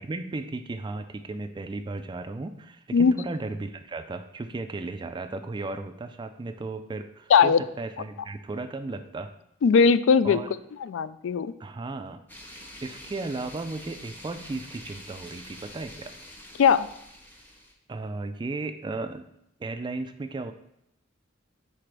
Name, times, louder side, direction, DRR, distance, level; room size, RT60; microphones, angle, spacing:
voice 1, 0.0-9.3 10.2-10.5 11.6-12.2 12.8-16.1 17.9-19.3 19.6-20.5, right 3 dB, 25° right, 9 dB, 0.3 m, -35 dB
voice 2, 9.6-10.4 10.8-11.5 16.6-16.9, left 6 dB, 70° left, 15 dB, 0.3 m, -19 dB
sound 1, 12.3-17.7, left 1 dB, 10° left, 0.8 m, -46 dB
5.0 x 4.2 x 5.9 m, 0.78 s
head